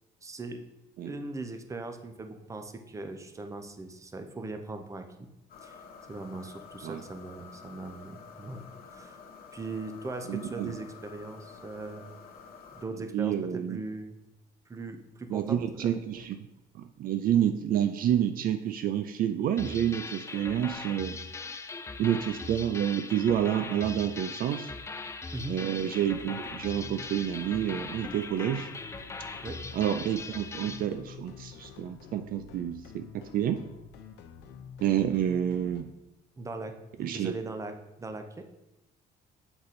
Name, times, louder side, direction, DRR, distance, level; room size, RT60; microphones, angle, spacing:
voice 1, 0.2-0.6 1.0-5.3 5.6-5.8 6.1-8.6 8.9-9.2 9.5-12.0 12.7-14.2 14.7-16.0 25.3-25.6 29.4-29.6 36.4-38.5, right 2 dB, 20° right, 7 dB, 0.7 m, -39 dB
sound 1, 5.5-12.9, left 5 dB, 60° left, 1.1 m, -49 dB
voice 2, 10.3-10.7 13.1-13.8 15.3-16.4 16.7-21.2 22.0-24.7 25.5-28.7 29.7-33.6 34.8-35.9 37.0-37.3, right 10 dB, 60° right, 9 dB, 0.4 m, -29 dB
sound 2, 19.6-30.9, left 4 dB, 15° left, 0.4 m, -40 dB
sound 3, 25.7-35.8, left 6 dB, 80° left, 0.7 m, -49 dB
7.9 x 3.8 x 4.1 m, 0.93 s
cardioid pair, 110°, 17 cm